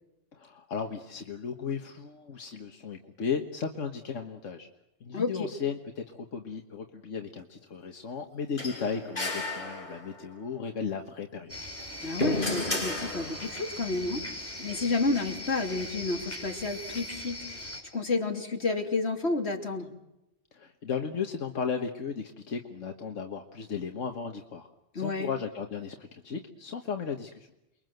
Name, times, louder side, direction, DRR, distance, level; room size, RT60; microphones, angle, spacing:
voice 1, 0.3-4.7 5.0-11.6 20.5-24.7 24.9-27.5, left 6 dB, 85° left, 4 dB, 1.7 m, -35 dB
voice 2, 5.1-5.5 12.0-14.2 14.6-19.9 24.9-25.3, left 3 dB, 60° left, 2 dB, 3.4 m, -30 dB
sound 1, 8.6-10.3 11.7-13.7, left 2 dB, 45° left, 5.7 m, -33 dB
sound 2, 11.5-17.8, left 1 dB, 10° left, 5.5 m, -40 dB
29.0 x 22.5 x 7.9 m, 0.90 s
omnidirectional pair, 1.2 m